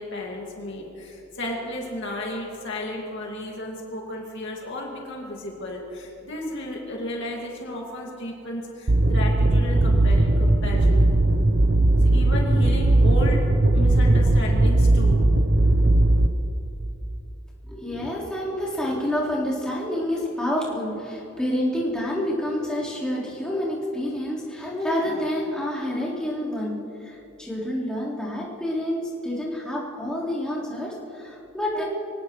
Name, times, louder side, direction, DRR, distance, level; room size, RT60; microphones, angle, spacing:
voice 1, 0.0-11.1 12.0-13.4 13.7-15.2, left 1 dB, 60° left, -2 dB, 2.3 m, -33 dB
sound 1, 8.9-16.3, right 2 dB, 55° right, 0.8 m, -18 dB
voice 2, 17.6-31.8, left 1 dB, 5° left, -8 dB, 4.1 m, -28 dB
25.0 x 18.0 x 3.2 m, 2.8 s
head